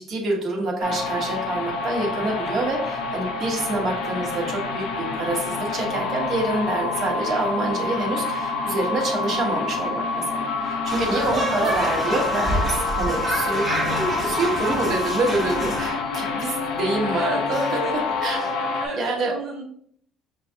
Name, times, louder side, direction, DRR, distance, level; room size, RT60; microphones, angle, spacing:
voice 1, 0.0-13.7 14.2-18.5 19.0-19.3, right 2 dB, 55° right, -1 dB, 1.2 m, -26 dB
sound 1, 0.8-18.9, left 4 dB, 90° left, 0.5 m, -27 dB
sound 2, 10.9-15.9, right 1 dB, 20° right, 1.1 m, -27 dB
voice 2, 11.6-12.1 17.0-19.6, right 3 dB, 85° right, -1 dB, 0.7 m, -34 dB
5.5 x 2.4 x 2.7 m, 0.63 s
cardioid pair, 110°, 0 cm